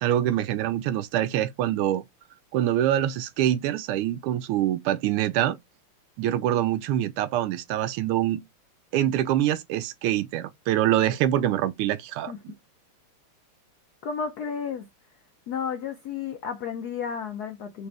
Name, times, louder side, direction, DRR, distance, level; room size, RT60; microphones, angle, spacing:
voice 1, 0.0-2.0 2.5-5.6 6.2-8.4 8.9-12.5, right 12 dB, 85° right, 1.5 m, -25 dB
voice 2, 14.0-14.9 15.5-17.9, left 6 dB, 75° left, 0.9 m, -32 dB
5.1 x 2.4 x 3.3 m
omnidirectional pair, 2.4 m